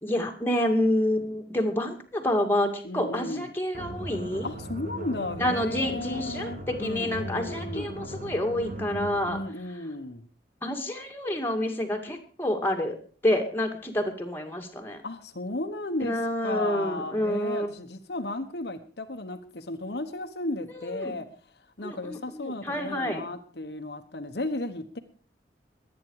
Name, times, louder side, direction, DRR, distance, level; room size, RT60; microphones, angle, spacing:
voice 1, 0.0-4.5 5.4-9.4 10.6-12.9 13.2-15.0 16.0-17.7 20.7-21.1 21.8-23.2, left 1 dB, 10° left, 2 dB, 2.3 m, -28 dB
voice 2, 2.8-3.5 4.4-7.9 9.3-10.3 15.0-21.3 21.8-25.0, left 2 dB, 65° left, 6 dB, 1.3 m, -34 dB
sound 1, 3.7-9.4, right 1 dB, 45° right, 2.4 m, -38 dB
23.0 x 9.3 x 4.8 m, 0.42 s
head